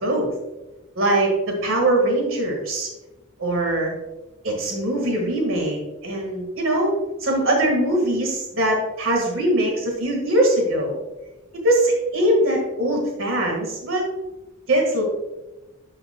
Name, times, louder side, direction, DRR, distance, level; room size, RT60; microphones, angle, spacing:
voice 1, 0.0-0.3 1.0-2.9 3.4-3.9 4.4-6.9 7.2-11.0 11.6-14.0 14.7-15.0, right 1 dB, 80° right, 1 dB, 1.7 m, -21 dB
11.5 x 5.7 x 2.3 m, 1.1 s
head